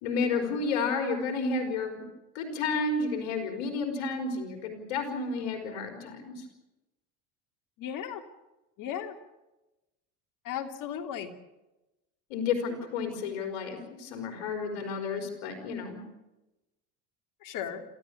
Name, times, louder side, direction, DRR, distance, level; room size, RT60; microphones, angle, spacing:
voice 1, 0.0-2.0 2.3-6.4 12.3-16.0, left 4 dB, 85° left, 4 dB, 4.6 m, -31 dB
voice 2, 7.8-8.2 8.8-9.2 10.4-11.3 17.4-17.8, left 9 dB, 65° left, 6 dB, 3.0 m, -35 dB
27.5 x 15.0 x 8.6 m, 1.0 s
supercardioid pair, 95°, 35 cm